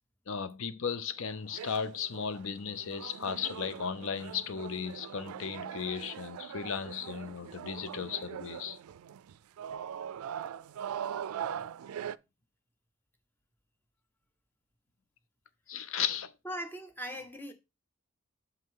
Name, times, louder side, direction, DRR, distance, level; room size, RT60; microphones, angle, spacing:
voice 1, 0.3-8.8 15.7-16.3, left 7 dB, 70° left, 0.5 m, -35 dB
sound 1, 1.2-12.2, right 8 dB, 90° right, 0.3 m, -41 dB
voice 2, 16.4-17.5, equal, 10° left, 0.8 m, -39 dB
7.3 x 5.4 x 3.7 m
head